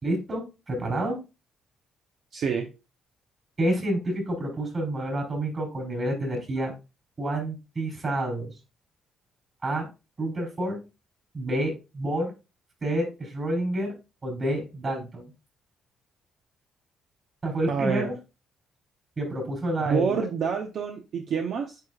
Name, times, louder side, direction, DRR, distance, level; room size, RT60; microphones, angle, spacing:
voice 1, 0.0-1.2 3.6-6.7 7.2-8.5 9.6-9.9 10.2-10.8 11.3-12.3 12.8-13.9 14.2-15.3 17.4-18.2 19.2-20.2, right 1 dB, 35° right, 2 dB, 4.1 m, -28 dB
voice 2, 2.3-2.7 17.7-18.1 19.9-21.8, right 6 dB, 65° right, 4 dB, 0.8 m, -27 dB
9.2 x 4.9 x 2.4 m, 0.27 s
cardioid pair, 90°, 0 cm